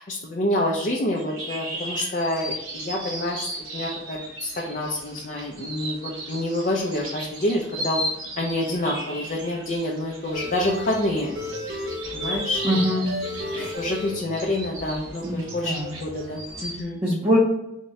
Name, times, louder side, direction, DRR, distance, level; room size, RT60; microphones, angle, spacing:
voice 1, 0.0-8.0 8.4-11.3 12.1-12.6 13.5-17.0, left 1 dB, 40° left, -2 dB, 0.4 m, -27 dB
sound 1, 1.1-16.8, right 1 dB, 85° right, 1.0 m, -36 dB
sound 2, 10.2-15.5 15.8-16.6, left 1 dB, 50° right, 1.0 m, -34 dB
voice 2, 12.6-13.1 13.6-13.7 15.2-15.8 17.0-17.4, equal, 25° right, -5 dB, 0.6 m, -23 dB
3.6 x 2.2 x 4.0 m, 0.89 s
head